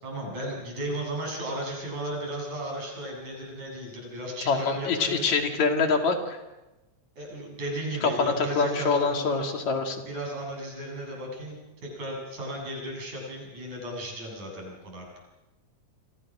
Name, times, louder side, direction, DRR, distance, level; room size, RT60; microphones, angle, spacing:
voice 1, 0.0-5.3 7.2-9.5 10.1-15.1, right 1 dB, 70° right, 0 dB, 9.0 m, -35 dB
voice 2, 4.5-6.4 8.0-10.0, left 4 dB, 70° left, 4 dB, 3.8 m, -25 dB
29.0 x 24.5 x 6.2 m, 1.0 s
omnidirectional pair, 3.4 m